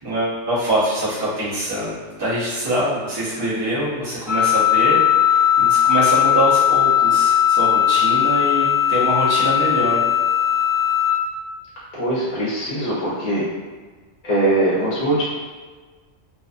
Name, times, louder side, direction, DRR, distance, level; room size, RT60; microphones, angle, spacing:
voice 1, 0.0-5.0 5.3-10.0, right 1 dB, 25° right, -9 dB, 0.7 m, -24 dB
Wind instrument woodwind instrument, 4.3-11.2, left 10 dB, 65° right, 0.9 m, -17 dB
voice 2, 12.0-13.4 14.2-15.2, right 1 dB, 40° left, -8 dB, 0.6 m, -21 dB
2.6 x 2.3 x 2.4 m, 1.4 s
omnidirectional pair, 1.3 m